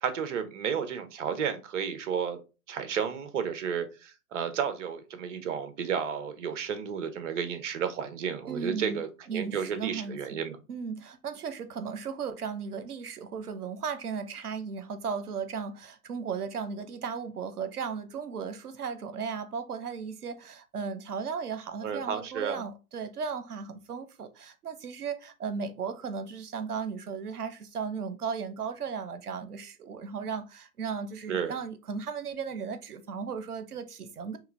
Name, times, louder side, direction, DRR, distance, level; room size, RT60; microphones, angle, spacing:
voice 1, 0.0-2.4 2.7-10.6 21.8-22.6 31.3-31.5, right 7 dB, 55° right, 1.1 m, -32 dB
voice 2, 8.5-9.0 9.3-10.4 10.7-34.4, right 6 dB, 80° right, 0.9 m, -36 dB
4.7 x 3.2 x 3.3 m
hypercardioid pair, 120°, 45 cm